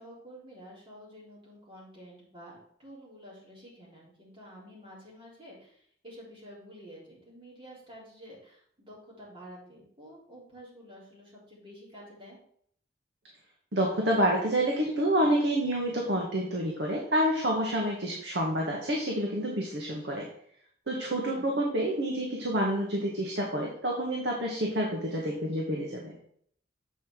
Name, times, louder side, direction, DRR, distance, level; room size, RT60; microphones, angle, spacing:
voice 1, 0.0-12.4 21.2-21.6, equal, 30° right, -6 dB, 3.8 m, -50 dB
voice 2, 13.7-20.3 20.9-26.1, right 1 dB, 70° right, -1 dB, 1.4 m, -28 dB
8.0 x 5.1 x 4.6 m, 0.64 s
head